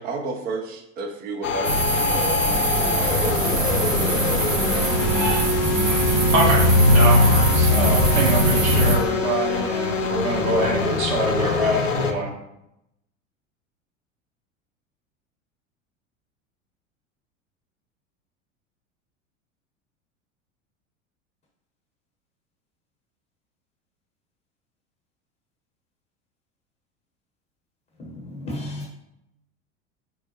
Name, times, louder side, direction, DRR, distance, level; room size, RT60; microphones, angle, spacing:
voice 1, 0.0-4.7, right 3 dB, 25° right, 0.4 m, -33 dB
sound 1, 1.4-12.1, left 5 dB, 80° left, 0.5 m, -25 dB
sound 2, 1.6-8.9, right 1 dB, 80° right, 0.8 m, -20 dB
voice 2, 6.9-12.3, right 1 dB, 60° right, 1.2 m, -24 dB
voice 3, 28.0-28.9, left 1 dB, 20° left, 0.8 m, -33 dB
4.5 x 2.0 x 3.0 m
figure-of-eight pair, 80°, 38 cm